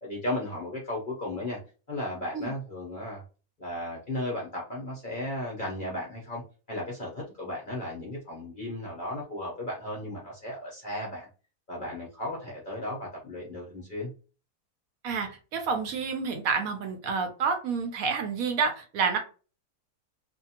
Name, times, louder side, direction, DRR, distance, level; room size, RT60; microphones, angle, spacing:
voice 1, 0.0-1.6 1.9-3.2 3.6-6.4 6.7-11.3 11.7-14.1, left 1 dB, 45° left, -3 dB, 0.6 m, -35 dB
voice 2, 15.0-19.2, right 5 dB, 70° right, 5 dB, 0.9 m, -29 dB
2.6 x 2.4 x 2.8 m, 0.35 s
omnidirectional pair, 1.7 m